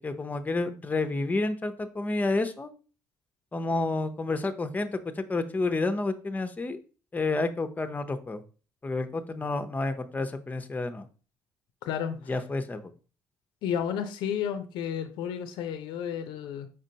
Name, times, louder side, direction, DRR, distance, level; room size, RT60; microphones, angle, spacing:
voice 1, 0.0-2.7 3.5-6.8 7.1-8.4 8.8-11.1 12.3-12.9, left 3 dB, 20° left, 8 dB, 0.6 m, -30 dB
voice 2, 11.8-12.3 13.6-16.7, left 8 dB, 75° left, 9 dB, 0.5 m, -32 dB
5.0 x 3.7 x 2.8 m, 0.37 s
supercardioid pair, 75°, 8 cm